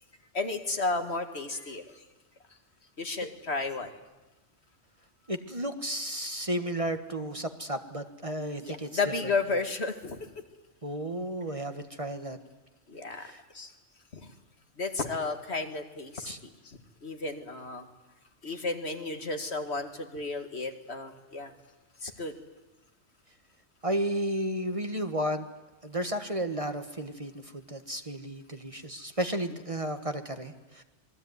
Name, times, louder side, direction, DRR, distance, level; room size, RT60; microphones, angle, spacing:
voice 1, 0.3-2.0 3.0-3.9 8.6-10.2 12.9-13.3 13.5-13.7 14.1-14.3 14.8-16.3 16.6-17.9 18.4-21.5 22.0-22.4 29.5-29.6, left 3 dB, 60° left, 6 dB, 2.3 m, -33 dB
voice 2, 5.3-9.3 10.8-12.4 13.2-13.4 16.2-16.4 23.8-25.5 25.8-30.8, right 1 dB, 30° right, 7 dB, 1.5 m, -33 dB
27.0 x 21.5 x 9.6 m, 1.0 s
omnidirectional pair, 1.2 m